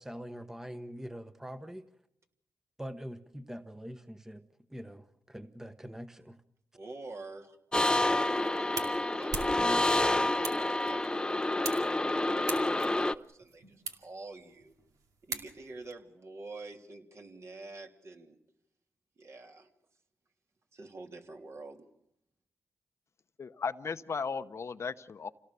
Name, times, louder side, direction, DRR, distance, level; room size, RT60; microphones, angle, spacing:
voice 1, 0.0-1.8 2.8-4.4 4.7-6.4, equal, 5° right, 9 dB, 1.1 m, -44 dB
voice 2, 6.7-7.6 7.9-14.7 15.2-18.4 19.2-19.7 20.7-21.9, right 3 dB, 50° right, 3 dB, 3.1 m, -48 dB
sound 1, 7.7-13.1, left 1 dB, 15° left, 0.8 m, -28 dB
sound 2, 8.1-15.9, right 5 dB, 80° right, 2.5 m, -43 dB
voice 3, 23.4-25.3, left 5 dB, 50° left, 12 dB, 0.9 m, -36 dB
28.0 x 17.5 x 6.9 m, 0.78 s
cardioid pair, 70°, 6 cm